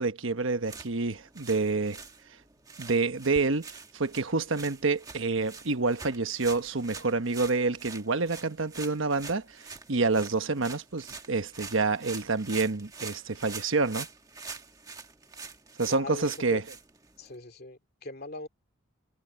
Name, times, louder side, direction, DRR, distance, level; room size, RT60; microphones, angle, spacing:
voice 1, 0.0-2.0 2.8-14.1 15.8-16.6, right 3 dB, 75° right, 1.2 m, -28 dB
sound 1, 0.6-17.4, right 4 dB, 20° right, 1.4 m, -45 dB
voice 2, 15.9-16.6 17.2-18.5, left 2 dB, 50° left, 2.5 m, -40 dB
head